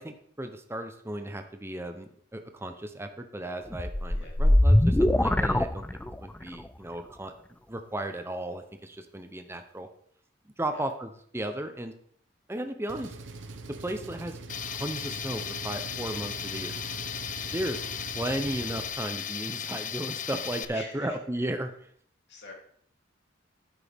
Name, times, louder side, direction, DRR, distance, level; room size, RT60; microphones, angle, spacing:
voice 1, 0.0-5.8 6.2-7.3 7.7-9.9 10.6-11.9 12.5-13.1 13.7-14.4 14.6-16.7 17.5-17.8 18.1-21.7, right 1 dB, 15° right, 7 dB, 0.8 m, -35 dB
sound 1, 3.7-6.4, left 1 dB, 10° left, 0.3 m, -22 dB
Engine, 12.9-18.9, right 3 dB, 70° right, 0.9 m, -42 dB
Tools, 14.5-20.6, left 8 dB, 45° left, 0.6 m, -36 dB
voice 2, 17.6-18.1 20.7-21.2 22.3-22.5, left 3 dB, 65° left, -1 dB, 3.0 m, -46 dB
11.0 x 9.0 x 3.6 m, 0.62 s
head